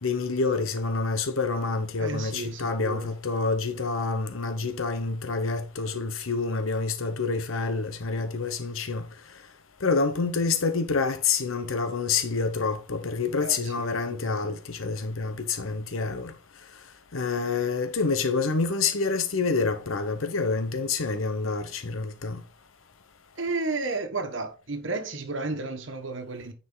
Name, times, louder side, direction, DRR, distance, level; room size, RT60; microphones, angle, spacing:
voice 1, 0.0-9.1 9.8-16.3 17.1-22.4, left 4 dB, 85° left, 0.9 m, -27 dB
voice 2, 2.0-3.1 13.4-14.4 23.3-26.5, right 3 dB, 65° right, 1.4 m, -33 dB
9.6 x 5.2 x 3.9 m
head